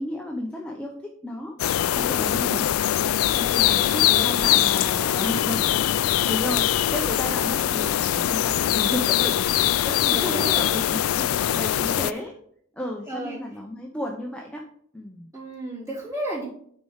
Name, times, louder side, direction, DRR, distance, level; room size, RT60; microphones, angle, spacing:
voice 1, 0.0-1.6 1.9-2.7 3.3-5.8 6.0-12.3 12.7-14.6 14.9-15.3, left 1 dB, 5° left, -1 dB, 0.7 m, -33 dB
sound 1, 1.6-12.1, left 12 dB, 85° left, 0.3 m, -22 dB
voice 2, 3.3-4.5 5.0-5.3 10.1-10.7 11.8-12.2 13.1-13.4 15.3-16.4, right 1 dB, 15° right, -6 dB, 3.0 m, -34 dB
9.0 x 4.3 x 4.8 m, 0.64 s
head